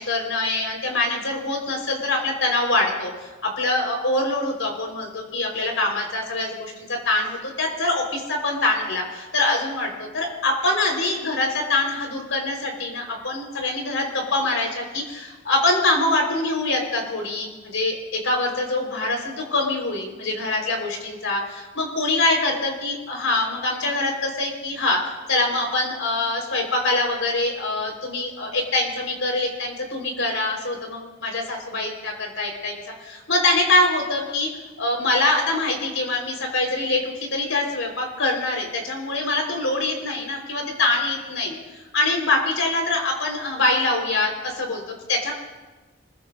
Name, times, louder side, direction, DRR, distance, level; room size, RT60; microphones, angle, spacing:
voice 1, 0.0-34.5 34.8-41.6 41.9-45.3, left 2 dB, 75° left, 1 dB, 4.2 m, -24 dB
25.0 x 21.5 x 2.6 m, 1.2 s
head